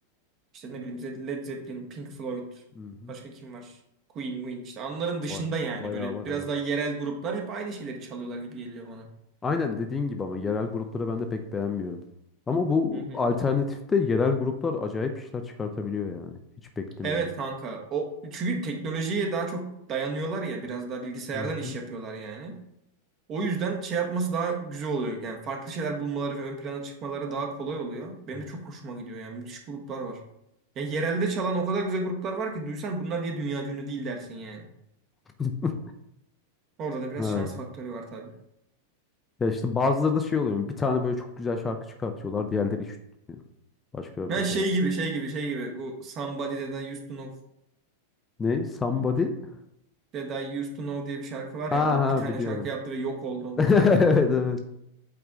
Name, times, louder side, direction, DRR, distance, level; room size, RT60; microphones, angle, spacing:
voice 1, 0.5-2.5 3.1-3.8 4.1-9.1 12.9-13.2 17.0-22.6 23.3-30.2 30.7-34.7 36.8-38.3 44.3-47.3 50.1-53.9, right 3 dB, 35° right, 2 dB, 1.3 m, -32 dB
voice 2, 2.8-3.1 5.3-5.4 5.8-6.5 9.4-12.0 12.5-16.4 16.8-17.3 21.4-21.7 35.4-35.7 37.2-37.6 39.4-43.0 43.9-44.6 48.4-49.3 51.7-52.7 53.6-54.6, left 4 dB, 15° left, 5 dB, 0.6 m, -26 dB
8.2 x 3.5 x 3.8 m, 0.80 s
figure-of-eight pair, 90°, 0 cm